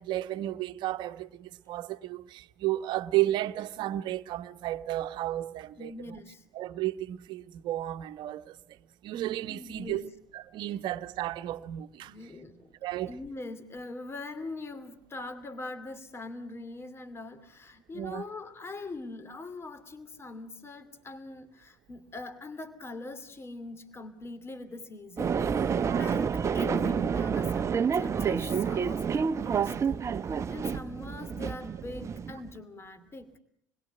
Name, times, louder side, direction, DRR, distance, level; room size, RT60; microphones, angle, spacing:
voice 1, 0.0-6.2 6.5-8.6 9.0-10.0 10.3-12.1 12.8-13.1 17.9-18.2 25.8-26.1, right 14 dB, 55° right, 1.2 m, -33 dB
voice 2, 5.8-6.5 9.5-10.0 12.1-12.7 13.0-33.3, left 3 dB, 25° left, 2.6 m, -42 dB
sound 1, 25.2-32.6, right 6 dB, 30° right, 1.0 m, -29 dB
28.0 x 21.0 x 8.0 m
hypercardioid pair, 65°, 9 cm